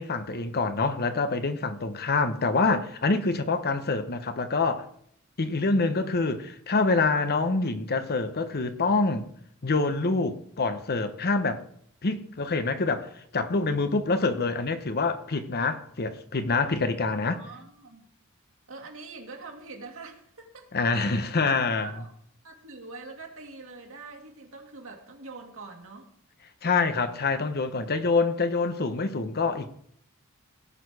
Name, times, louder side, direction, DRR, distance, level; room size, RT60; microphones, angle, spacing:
voice 1, 0.0-4.9 5.4-9.3 9.6-11.6 12.0-17.4 20.7-21.9 26.6-29.7, left 3 dB, 45° left, 0.9 m, -26 dB
voice 2, 17.2-18.1 18.7-21.2 21.8-22.1 22.4-26.1, right 3 dB, 65° right, 2.2 m, -44 dB
17.5 x 6.5 x 4.8 m
head